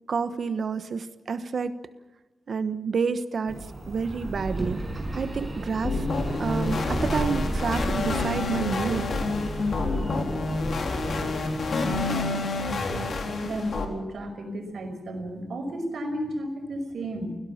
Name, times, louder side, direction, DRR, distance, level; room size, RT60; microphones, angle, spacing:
voice 1, 0.1-1.8 2.5-3.6 3.9-4.8 5.1-6.1 6.4-9.0, right 5 dB, 60° right, 11 dB, 1.1 m, -29 dB
sound 1, 3.5-12.0, right 1 dB, 20° right, 6.0 m, -33 dB
sound 2, 5.8-13.9, left 3 dB, 65° left, 4.0 m, -28 dB
voice 2, 13.4-17.4, right 1 dB, 85° right, 5 dB, 5.5 m, -33 dB
30.0 x 17.5 x 7.3 m, 1.1 s
wide cardioid pair, 165°, 0 cm